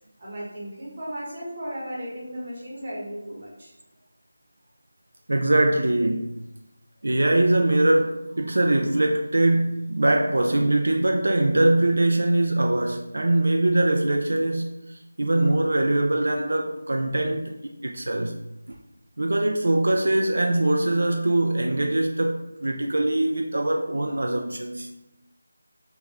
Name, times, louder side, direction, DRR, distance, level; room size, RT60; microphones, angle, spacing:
voice 1, 0.2-3.7, equal, 25° right, 0.9 m, -35 dB
voice 2, 5.3-6.4 7.0-18.4 18.7-18.8 19.2-24.9, right 1 dB, 70° right, 0.3 m, -22 dB
3.4 x 2.4 x 3.2 m
figure-of-eight pair, 175°, 0 cm